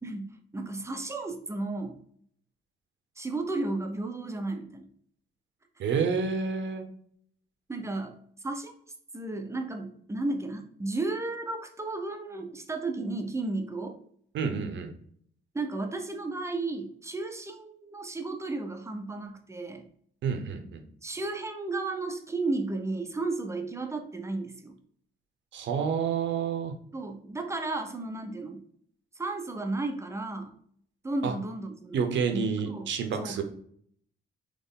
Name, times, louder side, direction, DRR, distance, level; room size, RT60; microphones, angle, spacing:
voice 1, 0.0-2.0 3.2-4.9 7.7-8.2 8.4-8.7 9.1-14.0 15.5-19.8 21.0-24.7 26.9-28.6 29.2-30.5 31.0-32.0 32.3-32.9 33.2-33.4, right 2 dB, 15° right, 5 dB, 0.7 m, -33 dB
voice 2, 5.8-6.9 14.3-14.9 20.2-20.8 25.5-26.7 31.2-31.3 31.9-33.4, right 6 dB, 70° right, 6 dB, 0.8 m, -29 dB
4.2 x 3.1 x 3.7 m, 0.62 s
cardioid pair, 90°, 20 cm